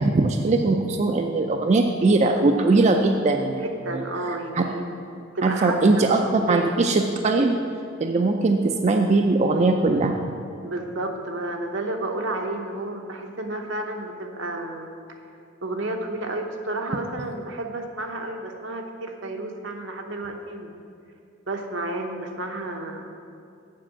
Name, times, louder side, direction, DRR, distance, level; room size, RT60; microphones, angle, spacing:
voice 1, 0.0-3.6 4.6-4.7 5.4-7.6 8.0-10.1, right 3 dB, 35° right, 4 dB, 0.4 m, -20 dB
voice 2, 3.6-4.8 5.1-6.7 10.6-14.9 15.6-20.7 21.5-23.1, right 2 dB, 75° right, 3 dB, 0.9 m, -31 dB
7.5 x 5.4 x 7.3 m, 2.5 s
head